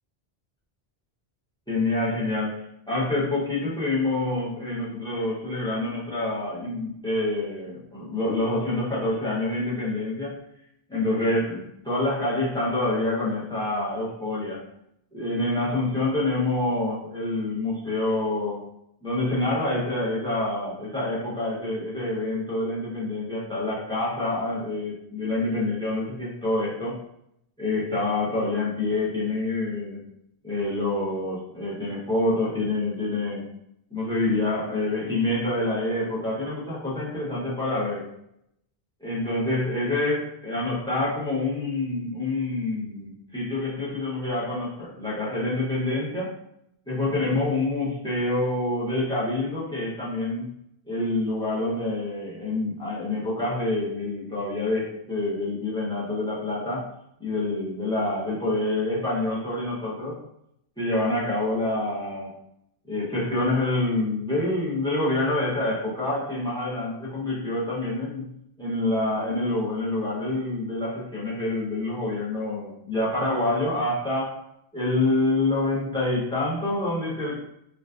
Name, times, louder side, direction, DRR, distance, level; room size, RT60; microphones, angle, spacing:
voice 1, 1.7-10.4 10.9-14.7 15.1-18.7 19.0-27.0 27.6-30.0 30.4-33.5 33.9-38.1 39.0-46.3 46.9-50.5 50.9-56.9 57.2-60.2 60.8-62.3 62.9-74.4 74.7-77.4, left 2 dB, 5° left, -6 dB, 0.4 m, -27 dB
2.4 x 2.2 x 2.3 m, 0.77 s
omnidirectional pair, 1.1 m